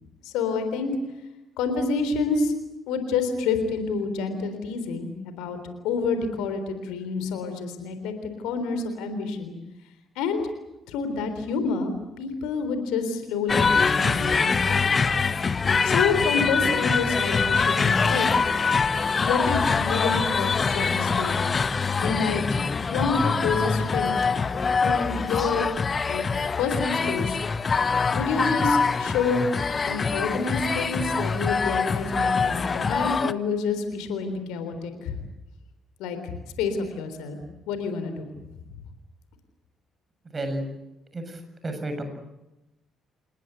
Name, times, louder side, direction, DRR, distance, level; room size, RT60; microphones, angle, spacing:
voice 1, 0.2-0.9 1.6-2.5 2.9-5.6 5.8-9.5 10.2-10.4 10.9-15.0 15.8-18.3 19.2-21.5 22.0-22.4 22.9-24.2 24.8-25.7 26.1-26.3 26.6-27.4 28.1-29.5 29.9-35.1 36.0-37.4 37.7-38.3, left 4 dB, 65° left, 8 dB, 3.7 m, -28 dB
sound 1, 13.5-33.3, left 5 dB, 35° left, 1.0 m, -24 dB
voice 2, 40.3-40.6 41.1-42.0, right 1 dB, 30° right, 7 dB, 7.0 m, -31 dB
28.5 x 20.0 x 8.0 m, 0.95 s
figure-of-eight pair, 45°, 0 cm